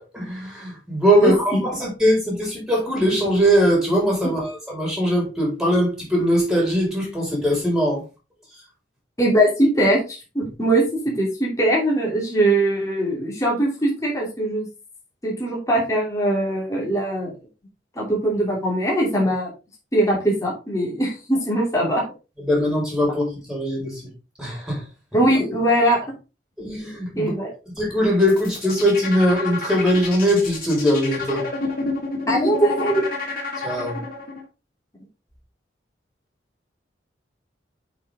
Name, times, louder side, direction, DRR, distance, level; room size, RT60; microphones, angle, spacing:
voice 1, 0.1-8.0 22.4-24.0 24.4-24.8 26.6-27.3 27.8-31.4 33.6-34.0, equal, 5° right, 4.1 m, -21 dB
voice 2, 1.2-1.6 9.2-14.7 15.2-17.3 17.9-19.5 19.9-22.0 25.1-26.0 27.2-27.5 32.3-33.0, right 1 dB, 20° left, 3.1 m, -21 dB
sound 1, 28.1-34.4, left 3 dB, 50° left, 2.6 m, -29 dB
8.4 x 5.3 x 3.6 m
head